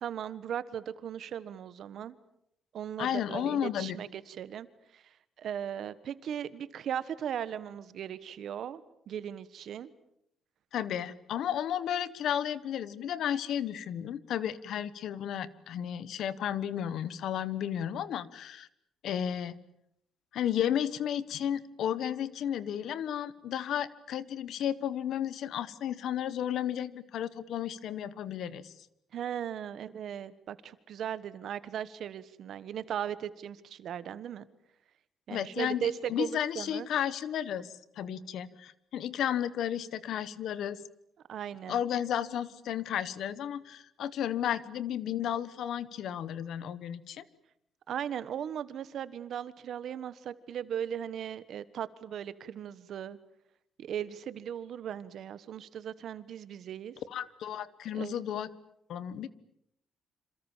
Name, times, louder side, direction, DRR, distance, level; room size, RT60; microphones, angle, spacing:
voice 1, 0.0-2.1 2.7-4.7 4.9-5.0 5.4-9.9 29.1-34.4 35.3-36.9 41.3-41.8 47.9-53.2 53.8-56.9 57.9-58.1, right 9 dB, 55° right, 15 dB, 1.3 m, -37 dB
voice 2, 3.0-4.0 10.7-18.7 19.0-19.5 20.3-28.7 35.3-40.8 41.7-47.2 57.1-58.5 58.9-59.3, left 10 dB, 65° left, 16 dB, 1.4 m, -33 dB
28.0 x 27.0 x 7.4 m, 0.77 s
cardioid pair, 170°, 0 cm